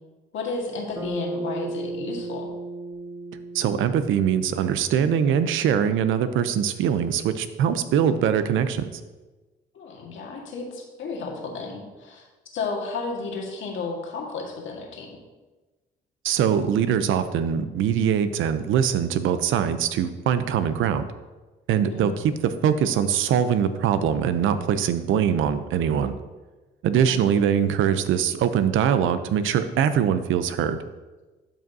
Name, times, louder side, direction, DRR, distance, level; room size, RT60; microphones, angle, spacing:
voice 1, 0.3-2.5 9.7-12.2 12.5-15.2 21.9-22.2 27.1-27.3, left 4 dB, 75° left, 0 dB, 1.7 m, -33 dB
Bass guitar, 0.9-5.4, right 2 dB, 15° right, 1.8 m, -35 dB
voice 2, 3.5-8.9 16.2-21.0 21.7-26.2 26.8-30.8, right 8 dB, 80° right, 11 dB, 0.6 m, -22 dB
12.0 x 5.1 x 2.7 m, 1.2 s
cardioid pair, 90°, 20 cm